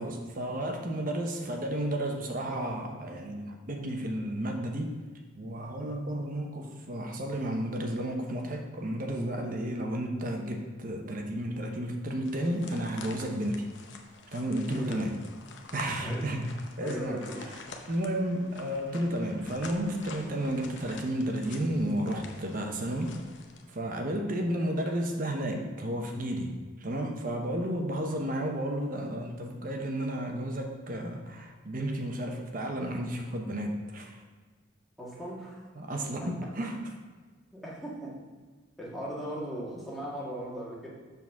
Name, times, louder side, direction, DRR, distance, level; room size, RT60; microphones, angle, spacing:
voice 1, 0.0-5.0 5.4-13.7 14.3-15.2 15.7-17.6 17.9-23.2 23.7-34.2 35.8-36.8, right 1 dB, 45° right, 2 dB, 0.8 m, -32 dB
sound 1, 12.2-23.8, left 4 dB, 65° left, 0.8 m, -48 dB
voice 2, 16.8-17.4 35.0-35.7 36.2-36.3 37.5-38.2 38.8-40.9, right 1 dB, ahead, -7 dB, 1.7 m, -38 dB
7.3 x 4.0 x 5.9 m, 1.4 s
head